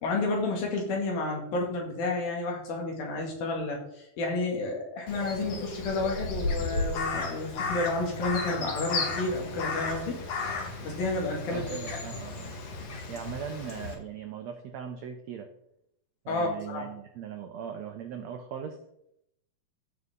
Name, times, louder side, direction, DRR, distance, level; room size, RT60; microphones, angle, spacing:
voice 1, 0.0-10.2 10.8-11.8 16.3-16.9, left 2 dB, 75° left, 0 dB, 4.2 m, -31 dB
Crow, 5.1-13.9, left 3 dB, 50° left, 2.4 m, -34 dB
voice 2, 11.5-12.6 13.1-15.5 16.2-18.8, right 8 dB, 85° right, 6 dB, 1.5 m, -39 dB
14.5 x 7.0 x 3.8 m, 0.78 s
omnidirectional pair, 4.2 m